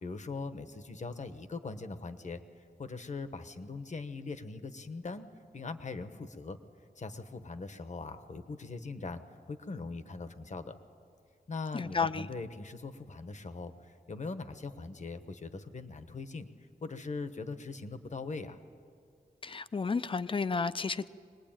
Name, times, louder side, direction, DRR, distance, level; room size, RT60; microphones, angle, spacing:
voice 1, 0.0-2.4 2.8-5.3 5.5-6.6 7.0-9.2 9.5-10.8 11.5-16.5 16.8-18.6, left 3 dB, 50° left, 1.2 m, -41 dB
voice 2, 11.7-12.3 19.4-21.1, left 4 dB, 35° left, 0.5 m, -32 dB
23.5 x 20.0 x 9.0 m
wide cardioid pair, 145°, 16 cm